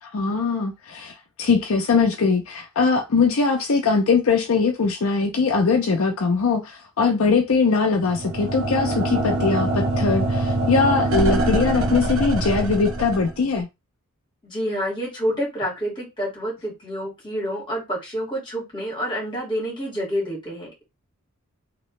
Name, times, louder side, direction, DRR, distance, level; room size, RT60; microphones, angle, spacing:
voice 1, 0.0-13.7, left 4 dB, 65° left, 0.5 m, -21 dB
sound 1, 8.0-13.6, right 2 dB, 65° right, 0.8 m, -24 dB
voice 2, 14.4-20.8, equal, 20° left, 2.0 m, -28 dB
3.1 x 2.9 x 3.1 m
head